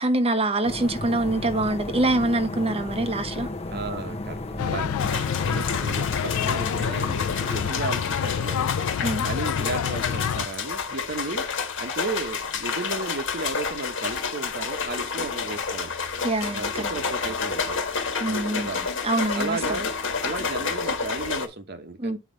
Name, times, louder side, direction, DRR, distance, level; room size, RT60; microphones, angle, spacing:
voice 1, 0.0-3.5 9.0-9.2 16.2-16.8 18.2-18.7 19.0-19.8 22.0-22.2, right 2 dB, 30° right, 0.9 m, -25 dB
sound 1, 0.6-7.7, left 2 dB, 30° left, 0.8 m, -34 dB
voice 2, 3.7-8.7 9.2-11.5 11.8-15.9 16.5-17.8 18.2-18.8 19.3-19.9 20.2-22.2, right 3 dB, 50° right, 1.2 m, -34 dB
sound 2, 4.6-10.5, left 8 dB, 80° left, 0.3 m, -28 dB
sound 3, 5.0-21.5, left 5 dB, 60° left, 1.5 m, -30 dB
8.4 x 4.9 x 4.0 m
head